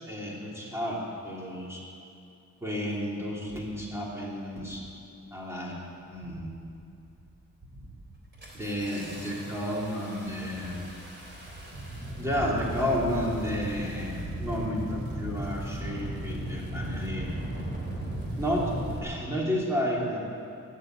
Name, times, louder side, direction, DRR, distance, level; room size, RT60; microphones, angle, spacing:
voice 1, 0.1-1.0 1.2-1.8 2.6-4.8 5.3-5.8 6.1-6.5 8.5-10.8 12.2-17.3 18.4-18.7 19.0-20.2, equal, 10° right, -4 dB, 3.3 m, -31 dB
Engine starting, 2.7-2.8 3.5-3.8 4.5-4.8 5.2-5.7 6.1-6.7 7.1-7.3 7.6-19.0, right 1 dB, 30° right, 3.4 m, -37 dB
13.0 x 10.5 x 9.3 m, 2.6 s
wide cardioid pair, 145°, 34 cm